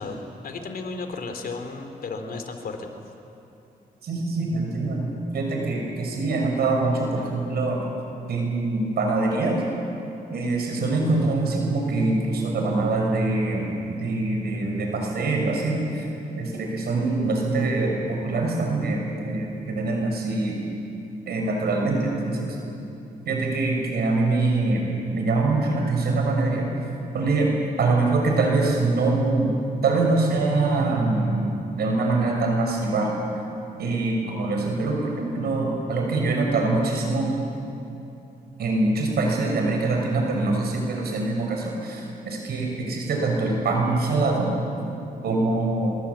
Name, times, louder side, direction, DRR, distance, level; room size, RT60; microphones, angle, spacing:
voice 1, 0.0-2.9, left 3 dB, 70° left, 6 dB, 3.2 m, -34 dB
voice 2, 4.0-7.8 8.3-9.6 10.3-16.1 16.3-20.6 21.3-22.6 23.3-24.8 25.1-26.7 27.1-27.5 27.8-29.5 29.8-31.5 31.7-33.1 33.8-37.3 38.6-44.5 44.8-44.9 45.2-45.9, right 3 dB, 85° right, 1 dB, 6.6 m, -24 dB
27.0 x 23.0 x 8.6 m, 2.8 s
cardioid pair, 110°, 16 cm